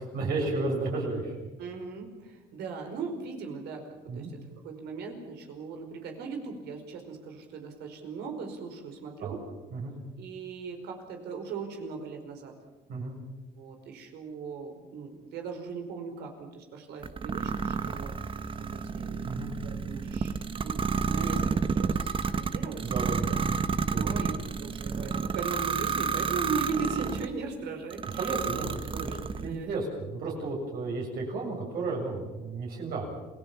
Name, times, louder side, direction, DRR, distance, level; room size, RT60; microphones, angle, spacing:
voice 1, 0.0-1.3 4.1-4.3 9.2-9.4 9.7-9.9 12.9-13.2 19.2-19.5 22.8-23.7 23.9-24.2 28.2-29.1 29.4-33.1, right 3 dB, 65° right, -1 dB, 7.4 m, -33 dB
voice 2, 1.6-4.3 4.6-9.4 10.2-12.5 13.5-20.3 20.6-23.2 23.9-28.7 29.1-29.2 29.4-29.7, right 5 dB, 80° right, 4 dB, 5.0 m, -39 dB
sound 1, 17.0-27.3 27.9-29.5, right 5 dB, 30° right, 1.2 m, -30 dB
28.0 x 18.0 x 7.3 m, 1.2 s
cardioid pair, 110°, 17 cm